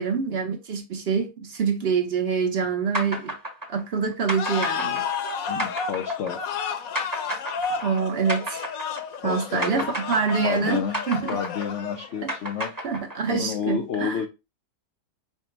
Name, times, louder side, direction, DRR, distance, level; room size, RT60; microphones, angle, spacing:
voice 1, 0.0-3.3 3.7-5.0 7.8-8.6 9.2-10.8 11.1-11.4 12.8-14.2, right 5 dB, 55° right, 0.7 m, -26 dB
sound 1, 2.9-9.3 9.6-13.5, right 1 dB, 15° right, 0.9 m, -32 dB
sound 2, 4.4-12.2, left 6 dB, 65° left, 1.0 m, -31 dB
voice 2, 5.5-6.4 9.2-9.9 10.4-11.0 11.3-12.7 13.3-14.3, left 7 dB, 85° left, 0.6 m, -30 dB
5.8 x 2.1 x 4.5 m
omnidirectional pair, 1.9 m